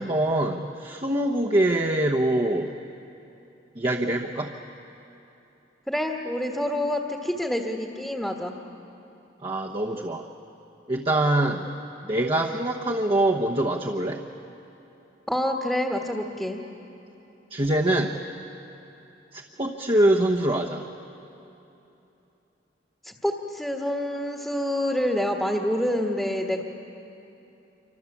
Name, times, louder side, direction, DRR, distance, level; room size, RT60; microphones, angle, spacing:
voice 1, 0.0-2.7 3.8-4.5 9.4-10.2 10.9-11.6 12.0-14.2 17.5-18.2 19.3-20.8, right 1 dB, 30° right, -2 dB, 1.1 m, -24 dB
voice 2, 5.9-8.5 15.3-16.6 23.0-26.6, left 1 dB, 5° left, 0 dB, 1.4 m, -27 dB
27.0 x 25.0 x 7.3 m, 3.0 s
head